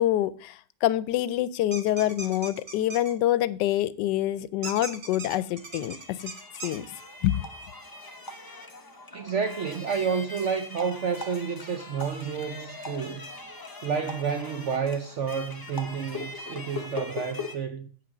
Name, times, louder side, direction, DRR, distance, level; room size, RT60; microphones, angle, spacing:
voice 1, 0.0-6.0 6.6-6.9 7.2-7.4, left 13 dB, 75° left, 1.2 m, -26 dB
sound 1, 1.7-3.1 4.6-6.8, right 3 dB, 40° right, 1.3 m, -38 dB
sound 2, 5.2-17.6, left 3 dB, 25° left, 0.4 m, -41 dB
voice 2, 9.1-13.3 13.8-17.9, right 6 dB, 75° right, 0.6 m, -30 dB
8.7 x 6.0 x 6.0 m
omnidirectional pair, 2.0 m